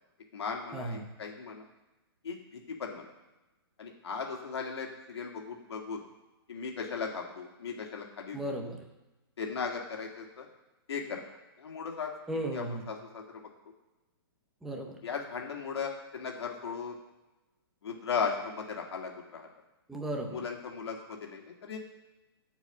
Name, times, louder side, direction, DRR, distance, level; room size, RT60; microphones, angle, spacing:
voice 1, 0.3-1.6 2.2-3.1 3.8-6.0 6.5-8.4 9.4-10.5 10.9-11.2 11.6-12.1 12.5-13.4 15.0-17.0 17.8-19.5 20.3-21.8, left 5 dB, 85° left, 1 dB, 2.0 m, -37 dB
voice 2, 8.3-8.8 12.3-12.9 14.6-15.0 19.9-20.4, right 1 dB, ahead, 2 dB, 0.6 m, -35 dB
11.5 x 4.8 x 8.0 m, 1.1 s
hypercardioid pair, 180°, 13 cm